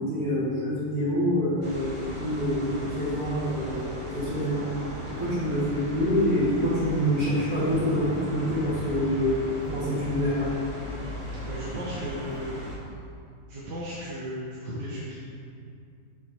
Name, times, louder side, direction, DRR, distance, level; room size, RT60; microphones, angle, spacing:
voice 1, 0.0-4.7 5.1-9.4 9.7-10.5, equal, 45° right, -13 dB, 2.2 m, -26 dB
sound 1, 1.6-12.8, equal, 25° right, 0.7 m, -37 dB
voice 2, 11.4-12.6 13.5-15.2, equal, 65° right, -7 dB, 1.5 m, -35 dB
7.0 x 6.8 x 2.8 m, 2.4 s
omnidirectional pair, 2.1 m